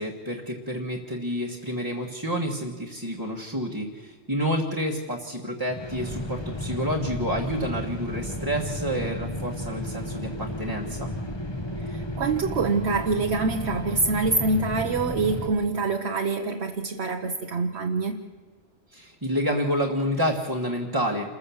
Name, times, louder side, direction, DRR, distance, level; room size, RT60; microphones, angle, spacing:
voice 1, 0.0-11.1 18.9-21.3, equal, 20° right, -1 dB, 1.4 m, -29 dB
sound 1, 5.7-15.5, left 1 dB, 20° left, 1.3 m, -33 dB
voice 2, 11.9-18.2, right 3 dB, 65° right, 4 dB, 1.1 m, -25 dB
28.0 x 15.0 x 7.1 m, 1.4 s
omnidirectional pair, 1.3 m